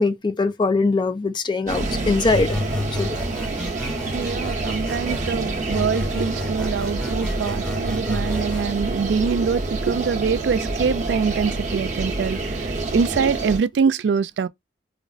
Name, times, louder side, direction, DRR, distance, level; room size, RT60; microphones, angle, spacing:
voice 1, 0.0-2.6 3.0-3.2, left 3 dB, 25° left, 0.4 m, -21 dB
sound 1, 1.7-13.6, right 2 dB, 45° right, 1.0 m, -27 dB
sound 2, 2.3-5.3 5.7-8.7, left 2 dB, 5° left, 0.7 m, -31 dB
voice 2, 4.1-14.5, right 5 dB, 80° right, 0.3 m, -24 dB
5.0 x 2.0 x 2.5 m
head